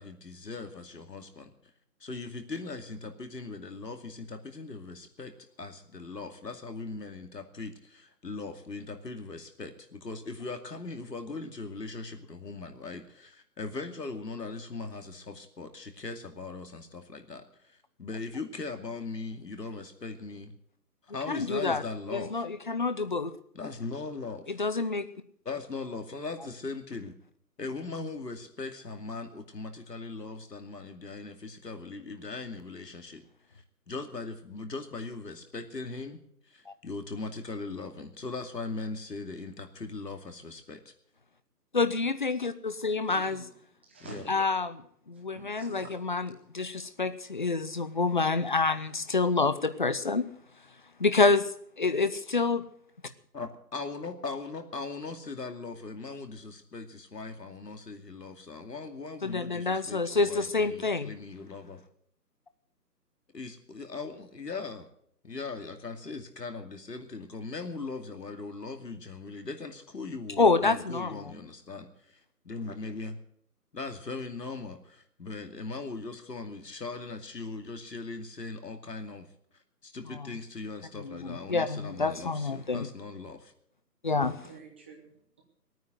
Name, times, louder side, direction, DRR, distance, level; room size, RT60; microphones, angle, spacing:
voice 1, 0.0-1.7 2.0-20.5 21.1-22.5 23.5-24.6 25.4-27.1 27.6-33.2 33.9-40.9 44.0-44.3 53.3-61.8 63.3-64.9 65.2-72.2 72.4-73.2 73.7-79.3 79.8-83.5, left 3 dB, 80° left, 6 dB, 2.6 m, -39 dB
voice 2, 21.3-21.8 22.1-23.3 24.5-25.1 36.7-36.8 41.7-43.4 44.3-44.7 45.1-50.3 51.0-51.5 51.8-52.6 59.2-61.1 70.4-71.2 80.1-80.3 81.0-82.9 84.0-84.3, left 3 dB, 30° left, 13 dB, 0.7 m, -27 dB
voice 3, 43.1-43.5 43.8-44.5 45.1-45.9 84.4-85.4, right 4 dB, 5° right, 0 dB, 0.8 m, -48 dB
18.0 x 9.4 x 7.9 m, 0.67 s
figure-of-eight pair, 155°, 48 cm